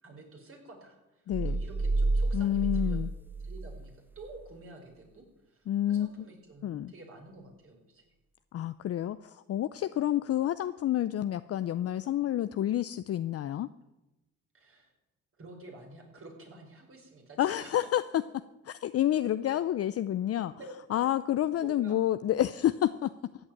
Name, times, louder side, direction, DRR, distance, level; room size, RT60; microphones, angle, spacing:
voice 1, 0.0-3.0 3.4-8.1 14.5-14.9 15.4-17.8 19.5-19.9 20.6-21.1 21.5-22.0, right 2 dB, 45° right, 2 dB, 4.8 m, -50 dB
voice 2, 1.3-1.6 2.3-3.1 5.7-6.3 6.6-6.9 8.5-13.7 17.4-18.0 18.6-20.5 20.9-23.1, left 12 dB, 50° left, 13 dB, 0.5 m, -29 dB
sound 1, 1.3-3.9 4.2-4.3, right 2 dB, 5° right, 0.8 m, -30 dB
14.5 x 8.0 x 8.8 m, 1.0 s
cardioid pair, 90°, 30 cm